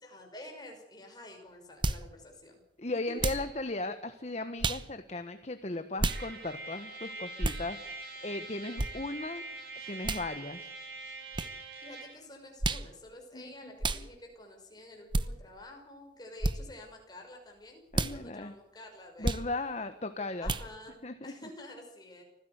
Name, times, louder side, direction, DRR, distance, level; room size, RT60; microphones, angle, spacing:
voice 1, 0.0-2.6 3.1-3.2 11.8-19.3 20.4-21.0 21.2-22.2, left 1 dB, 25° left, 2 dB, 6.0 m, -49 dB
sound 1, 1.8-2.1 3.2-3.5 4.6-4.8 6.0-6.2 7.4-7.6 8.8-8.9 10.0-10.2 11.3-11.5 12.6-12.9 13.8-14.0 15.1-15.3 16.4-16.6 17.9-18.1 19.2-19.5 20.4-20.7, right 2 dB, 25° right, 1.0 m, -30 dB
voice 2, 2.8-9.4 9.9-10.7 13.3-14.1 17.9-18.5 19.2-20.5 21.0-21.3, left 2 dB, 40° left, 9 dB, 1.3 m, -37 dB
Trumpet, 6.1-12.2, right 2 dB, 65° right, 7.1 m, -44 dB
25.5 x 15.5 x 8.2 m, 0.81 s
head